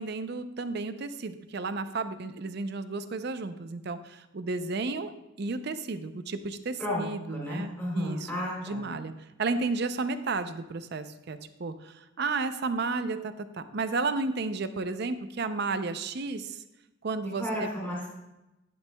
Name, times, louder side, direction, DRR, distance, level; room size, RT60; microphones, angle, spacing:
voice 1, 0.0-5.1 5.4-8.3 8.6-9.1 9.4-16.6 17.0-17.7, right 3 dB, 55° right, 11 dB, 0.5 m, -32 dB
voice 2, 6.8-8.8 17.3-18.1, left 1 dB, 5° left, -7 dB, 2.6 m, -33 dB
11.0 x 8.9 x 2.2 m, 0.96 s
head